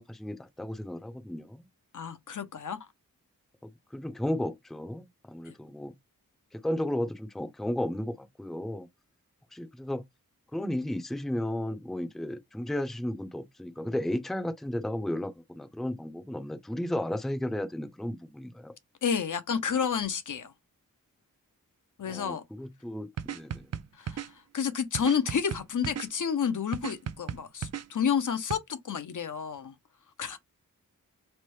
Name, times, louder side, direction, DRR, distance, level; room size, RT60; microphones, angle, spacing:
voice 1, 0.0-1.7 3.9-5.9 6.5-8.9 9.5-10.0 10.5-18.7 22.1-23.7, left 1 dB, ahead, 0.5 m, -34 dB
voice 2, 1.9-2.8 19.0-20.5 22.0-22.4 24.0-29.7 30.2-30.4, left 7 dB, 60° left, 0.6 m, -30 dB
sound 1, 23.2-24.3 24.9-26.1 26.7-27.8 28.5-28.6, right 8 dB, 50° right, 0.4 m, -35 dB
3.2 x 2.1 x 3.0 m
cardioid pair, 45°, 34 cm